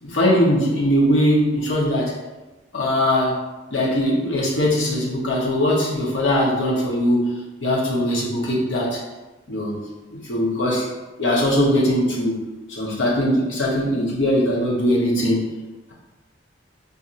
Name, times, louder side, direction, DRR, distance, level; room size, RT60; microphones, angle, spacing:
voice 1, 0.0-2.1 2.7-3.4 3.7-7.3 7.6-9.0 9.5-9.7 10.1-10.9 11.2-12.4 12.7-15.5, equal, 80° left, -4 dB, 0.9 m, -20 dB
4.2 x 2.6 x 2.5 m, 1.1 s
head